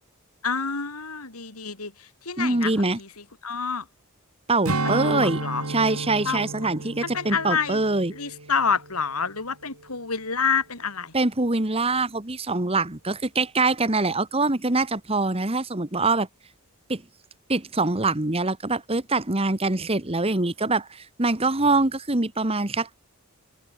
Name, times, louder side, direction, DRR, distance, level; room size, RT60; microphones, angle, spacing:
voice 1, 0.4-3.1 3.4-3.8 5.0-5.6 6.2-6.7 7.0-7.8 8.1-11.1, left 5 dB, 85° left, 4.9 m, -28 dB
voice 2, 2.4-3.0 4.5-5.4 5.7-8.1 11.1-16.3 16.9-17.0 17.5-22.9, right 3 dB, 25° right, 1.5 m, -24 dB
Strum, 4.7-9.4 9.7-10.0, right 2 dB, 75° right, 3.4 m, -32 dB
head